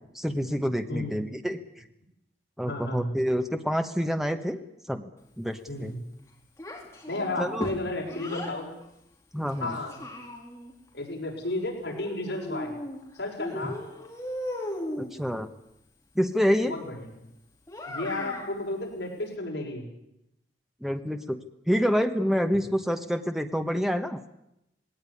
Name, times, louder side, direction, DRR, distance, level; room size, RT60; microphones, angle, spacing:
voice 1, 0.1-1.8 2.6-4.6 4.9-5.1 5.4-5.9 7.4-7.7 9.3-9.8 15.0-15.5 16.1-16.8 20.8-21.4 21.7-24.2, equal, ahead, 7 dB, 1.2 m, -27 dB
voice 2, 0.9-1.2 2.7-3.1 5.7-6.0 7.1-8.7 9.6-10.0 10.9-12.7 13.1-13.8 16.7-17.1 17.9-19.9, left 2 dB, 65° left, 0 dB, 6.1 m, -33 dB
Child speech kid speaking, 6.6-8.6 9.5-10.7 11.9-13.0 13.4-15.1 17.7-18.5, left 1 dB, 15° left, 3.6 m, -37 dB
19.5 x 18.0 x 9.9 m, 0.84 s
head